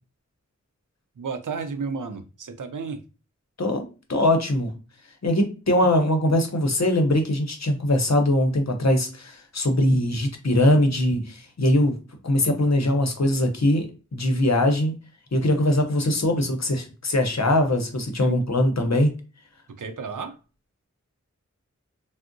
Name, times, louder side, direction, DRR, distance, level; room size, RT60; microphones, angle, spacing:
voice 1, 1.2-3.0 18.2-18.4 19.8-20.4, right 5 dB, 85° right, 7 dB, 0.5 m, -32 dB
voice 2, 3.6-4.7 5.2-12.0 12.2-13.9 14.1-14.9 15.3-19.1, left 1 dB, 60° left, 5 dB, 0.7 m, -21 dB
3.5 x 2.0 x 2.5 m, 0.34 s
wide cardioid pair, 45°, 31 cm